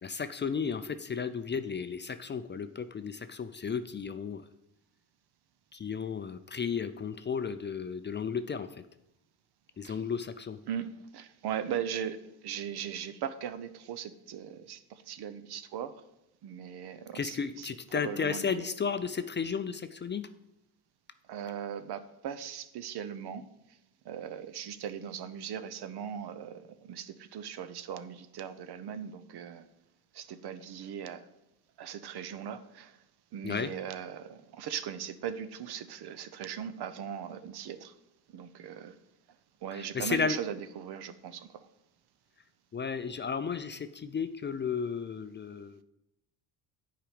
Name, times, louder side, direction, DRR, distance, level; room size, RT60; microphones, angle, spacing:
voice 1, 0.0-4.4 5.7-8.7 9.8-10.6 17.1-20.2 33.4-33.7 39.7-40.4 42.7-45.8, left 6 dB, 25° left, 10 dB, 0.4 m, -33 dB
voice 2, 10.7-16.0 16.4-18.7 21.3-23.4 24.0-29.7 30.1-31.2 31.8-33.0 33.3-37.9 38.3-39.0 39.6-41.7, right 8 dB, 60° right, 13 dB, 0.8 m, -39 dB
8.9 x 4.9 x 5.0 m, 0.87 s
cardioid pair, 85°, 44 cm